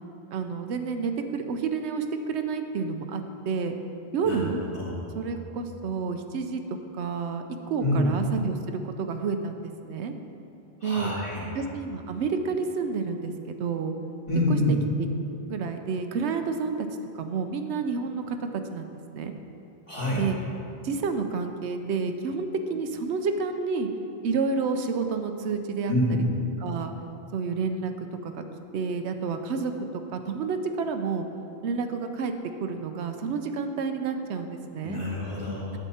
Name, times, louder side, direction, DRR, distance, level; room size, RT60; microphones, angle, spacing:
voice 1, 0.3-3.8 4.1-4.6 5.1-10.1 10.8-11.1 11.5-13.3 13.6-13.9 14.5-14.6 15.0-15.1 15.4-16.9 17.1-19.3 20.1-20.4 20.8-23.9 24.2-26.2 26.6-26.9 27.3-28.4 28.7-29.7 30.1-31.3 31.6-32.3 32.6-35.0, right 5 dB, 85° right, 7 dB, 0.9 m, -30 dB
voice 2, 10.8-11.5 14.3-14.8 19.9-20.2 25.9-26.3 34.8-35.8, left 1 dB, 30° left, -7 dB, 2.1 m, -26 dB
8.9 x 7.3 x 4.2 m, 2.7 s
omnidirectional pair, 1.1 m